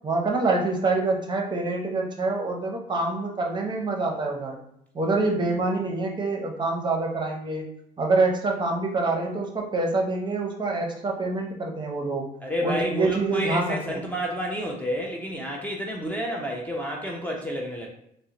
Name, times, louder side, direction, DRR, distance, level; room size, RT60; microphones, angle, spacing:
voice 1, 0.0-4.6 4.9-7.6 8.0-12.3 12.6-14.0, right 3 dB, 25° right, 1 dB, 0.7 m, -26 dB
voice 2, 12.4-17.9, equal, 10° left, -2 dB, 0.5 m, -30 dB
3.6 x 2.0 x 2.8 m, 0.74 s
cardioid pair, 110°, 17 cm